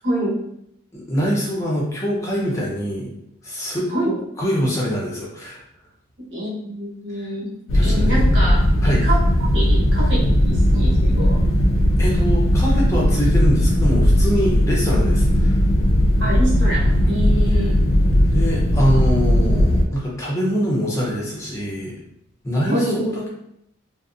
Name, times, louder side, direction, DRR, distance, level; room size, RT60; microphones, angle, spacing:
voice 1, 0.0-0.4 3.9-4.1 6.3-7.5 7.8-9.2 9.5-11.4 16.2-17.7 22.7-23.0, right 1 dB, 60° right, -6 dB, 1.0 m, -26 dB
voice 2, 0.9-3.1 3.4-3.9 4.4-5.6 7.7-8.2 8.8-9.1 12.0-15.6 17.5-17.7 18.3-21.9 22.4-23.3, equal, 15° left, -4 dB, 0.6 m, -24 dB
sound 1, 7.7-19.9, equal, 75° left, 0.4 m, -17 dB
2.5 x 2.0 x 2.4 m, 0.76 s
head